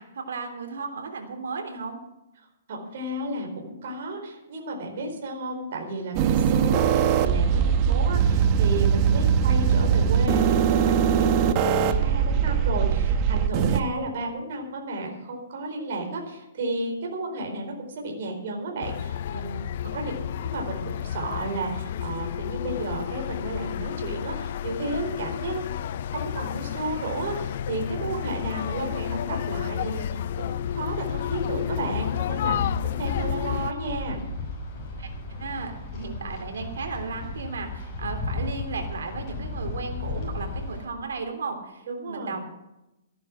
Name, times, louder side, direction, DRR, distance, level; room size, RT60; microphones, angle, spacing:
voice 1, 0.0-2.0 19.9-20.1 32.5-32.6 35.0-42.4, right 4 dB, 85° right, 4 dB, 3.4 m, -35 dB
voice 2, 2.7-34.2 41.9-42.4, right 2 dB, 55° right, 1 dB, 4.4 m, -33 dB
sound 1, 6.1-13.8, right 7 dB, 30° right, 1.0 m, -21 dB
sound 2, 18.8-33.7, left 10 dB, 50° left, 0.4 m, -31 dB
Wind, 31.1-40.8, left 3 dB, 30° left, 6.1 m, -35 dB
15.0 x 11.0 x 6.3 m, 0.93 s
hypercardioid pair, 160°, 0 cm